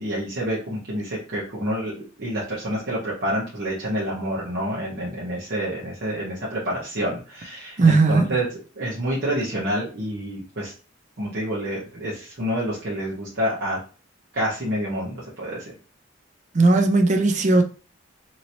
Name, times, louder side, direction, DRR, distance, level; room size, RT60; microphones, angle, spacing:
voice 1, 0.0-8.5 8.8-10.7 11.2-13.8 14.3-15.6, equal, 50° right, 1.0 m, -28 dB
voice 2, 7.8-8.3 16.5-17.6, right 3 dB, 35° right, 0.4 m, -17 dB
2.9 x 2.9 x 2.6 m
head